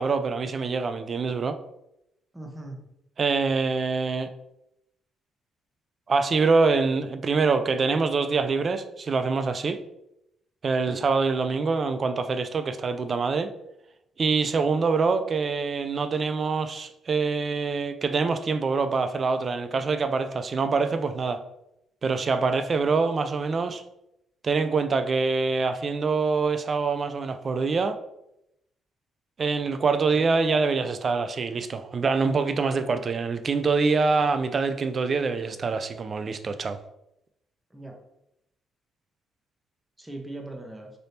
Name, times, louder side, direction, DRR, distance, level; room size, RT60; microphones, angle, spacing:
voice 1, 0.0-1.6 3.2-4.3 6.1-9.8 10.6-13.5 14.2-21.4 22.0-23.8 24.4-28.0 29.4-36.8, right 4 dB, 45° right, 0.4 m, -25 dB
voice 2, 2.3-2.8 10.9-11.0 22.3-22.6 30.1-30.4 37.7-38.0 40.0-40.9, right 2 dB, 10° right, 0.8 m, -40 dB
3.4 x 2.6 x 4.1 m
cardioid pair, 90°, 0 cm